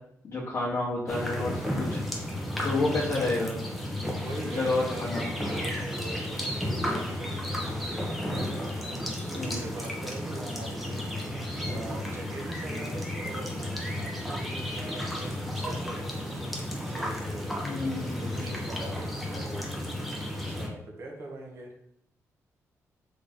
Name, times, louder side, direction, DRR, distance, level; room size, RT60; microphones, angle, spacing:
voice 1, 0.2-2.0 2.6-3.6 4.6-5.2 9.3-9.6 17.6-18.5, left 2 dB, 40° left, -8 dB, 0.9 m, -29 dB
sound 1, 1.1-20.7, left 1 dB, ahead, 0.6 m, -33 dB
voice 2, 4.2-5.2 5.6-19.7 20.4-21.7, right 2 dB, 45° right, 0 dB, 0.7 m, -43 dB
3.6 x 2.6 x 3.4 m, 0.76 s
wide cardioid pair, 165°, 6 cm